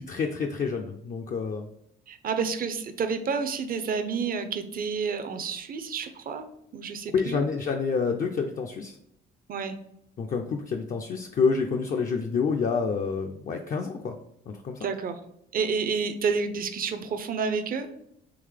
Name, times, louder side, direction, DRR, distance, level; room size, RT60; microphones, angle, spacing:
voice 1, 0.0-1.7 7.1-9.0 10.2-14.2 14.5-14.9, left 5 dB, 45° left, 2 dB, 0.4 m, -28 dB
voice 2, 2.1-6.4 6.7-7.5 9.5-9.8 14.8-15.2 15.5-17.9, right 5 dB, 45° right, 8 dB, 0.5 m, -29 dB
3.8 x 2.8 x 3.2 m, 0.76 s
cardioid pair, 90°, 20 cm